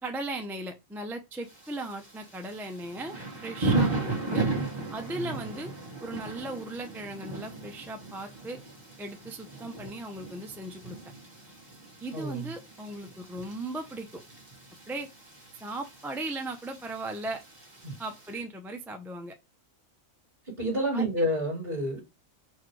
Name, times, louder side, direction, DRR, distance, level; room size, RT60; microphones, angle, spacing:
voice 1, 0.0-4.5 4.9-5.7 6.0-8.6 9.0-11.0 12.0-14.1 14.9-15.1 15.6-17.4 18.0-19.3 20.9-21.1, right 2 dB, ahead, 0.5 m, -37 dB
Thunder / Rain, 1.5-18.3, right 2 dB, 20° right, 2.0 m, -36 dB
voice 2, 5.1-5.5 12.1-12.5 17.8-17.9 20.4-22.0, equal, 35° right, 2.3 m, -29 dB
4.9 x 4.4 x 4.7 m
omnidirectional pair, 1.5 m